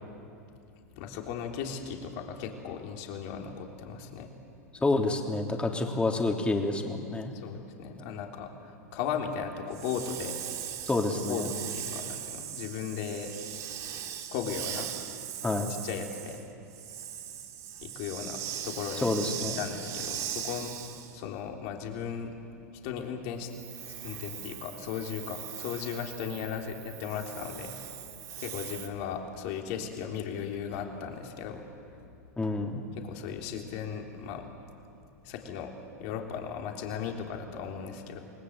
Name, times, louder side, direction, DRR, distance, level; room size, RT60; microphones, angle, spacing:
voice 1, 1.0-4.3 7.3-10.4 11.3-13.3 14.3-14.9 15.8-16.4 16.7-16.8 17.8-19.1 19.6-20.8 21.1-22.4 22.7-23.5 23.8-28.0 28.4-32.0 33.0-34.5 35.2-35.7 36.0-38.2, left 7 dB, 55° left, 2 dB, 3.6 m, -37 dB
voice 2, 4.8-7.3 10.9-11.5 15.4-15.7 19.0-19.6 32.4-32.8, left 2 dB, 10° left, 2 dB, 3.2 m, -28 dB
Hiss, 9.7-21.2 23.5-28.9, right 10 dB, 40° right, 2.3 m, -40 dB
28.0 x 20.5 x 8.1 m, 2.6 s
hypercardioid pair, 100°, 9 cm